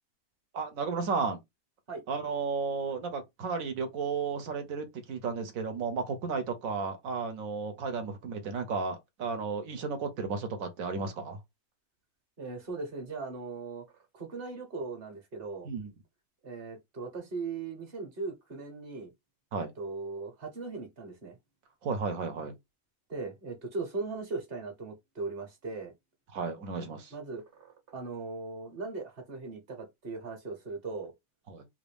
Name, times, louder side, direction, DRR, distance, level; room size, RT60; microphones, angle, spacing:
voice 1, 0.5-1.4 2.1-11.4 15.6-15.9 19.5-19.7 21.8-22.5 26.3-27.1 31.5-31.6, right 5 dB, 75° right, 1.2 m, -33 dB
voice 2, 12.4-13.8 14.1-15.7 16.4-19.1 19.6-21.4 23.1-25.9 27.1-31.1, right 3 dB, 45° right, 1.2 m, -39 dB
3.1 x 2.6 x 3.4 m
omnidirectional pair, 1.5 m